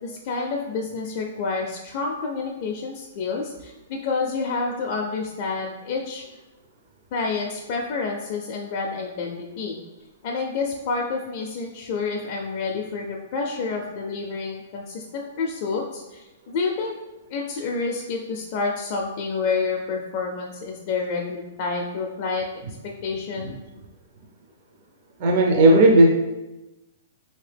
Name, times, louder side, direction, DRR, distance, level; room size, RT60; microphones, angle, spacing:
voice 1, 0.0-6.2 7.1-9.8 10.2-17.0 17.3-22.5 23.0-23.6, left 4 dB, 40° left, 0 dB, 0.4 m, -29 dB
voice 2, 25.2-26.0, right 1 dB, 45° right, 0 dB, 0.5 m, -14 dB
3.3 x 2.7 x 3.3 m, 1.0 s
hypercardioid pair, 160°, 0 cm